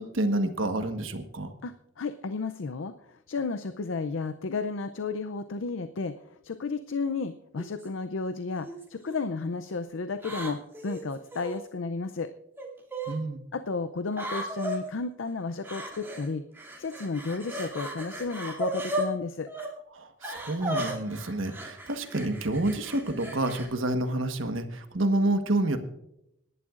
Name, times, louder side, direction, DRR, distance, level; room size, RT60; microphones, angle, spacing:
voice 1, 0.0-1.5 13.1-13.4 19.9-25.8, right 1 dB, 85° right, 7 dB, 1.3 m, -28 dB
voice 2, 1.6-6.1 6.4-12.3 13.5-16.4 16.8-19.5, left 4 dB, 75° left, 11 dB, 0.5 m, -33 dB
sound 1, 7.6-7.9 8.6-9.2 10.2-11.6 12.6-13.2 14.1-14.8 15.6-16.3 16.5-19.1 19.5-19.7 20.2-23.7, right 1 dB, 10° right, 2.6 m, -35 dB
26.0 x 11.0 x 2.5 m, 0.81 s
head